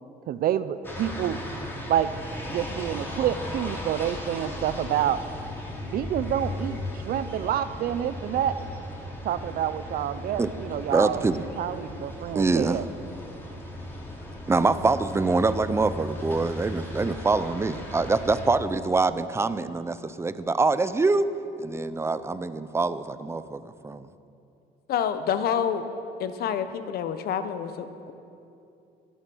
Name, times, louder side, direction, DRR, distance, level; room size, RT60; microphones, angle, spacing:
voice 1, 0.3-1.4 1.9-2.1 2.5-5.2 5.9-6.8 7.1-8.5 9.2-11.2 11.6-12.8, right 10 dB, 60° right, 12 dB, 0.6 m, -28 dB
sound 1, 0.8-18.5, left 1 dB, 15° left, 3.0 m, -37 dB
voice 2, 10.9-11.4 12.3-12.8 14.5-21.3 21.6-24.1, right 3 dB, 15° right, 13 dB, 0.6 m, -25 dB
voice 3, 24.9-25.8 26.2-28.1, left 8 dB, 65° left, 10 dB, 1.1 m, -28 dB
17.0 x 11.0 x 6.3 m, 2.7 s
cardioid pair, 110°, 17 cm